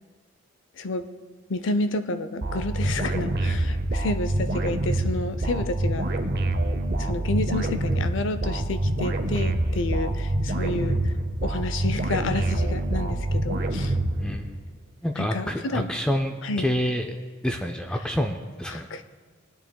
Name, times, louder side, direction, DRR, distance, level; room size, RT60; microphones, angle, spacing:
voice 1, 1.5-6.1 7.0-11.0 11.4-13.9 15.2-15.9 16.4-16.7 18.7-19.0, left 2 dB, 60° left, 11 dB, 0.5 m, -30 dB
sound 1, 2.4-14.7, right 1 dB, 50° right, 0.6 m, -26 dB
voice 2, 15.0-17.1 17.4-18.9, equal, 5° left, 4 dB, 0.3 m, -27 dB
19.0 x 9.1 x 2.2 m, 1.5 s
head